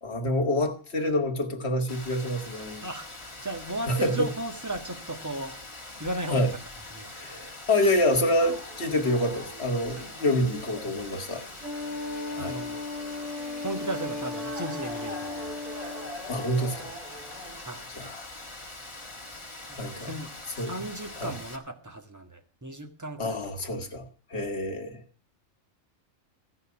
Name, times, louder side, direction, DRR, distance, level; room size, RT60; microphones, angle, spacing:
voice 1, 0.0-2.8 3.9-4.3 6.3-6.5 7.1-11.4 12.3-12.6 16.3-16.9 18.0-18.3 19.8-20.1 20.6-20.8 21.2-21.3 23.2-25.0, left 1 dB, 55° left, 5 dB, 1.9 m, -27 dB
Rain, 1.9-21.6, left 2 dB, 20° left, 1.6 m, -43 dB
voice 2, 2.8-5.6 6.0-6.5 6.9-7.1 9.9-10.1 12.4-12.8 13.6-15.6 17.6-17.8 19.6-20.3 20.6-23.4, right 2 dB, 15° right, 5 dB, 1.5 m, -36 dB
sound 1, 8.3-17.8, equal, 30° right, 3.6 m, -44 dB
Wind instrument woodwind instrument, 11.6-16.3, left 3 dB, 65° right, 4.5 m, -36 dB
15.5 x 5.5 x 9.7 m, 0.42 s
omnidirectional pair, 1.4 m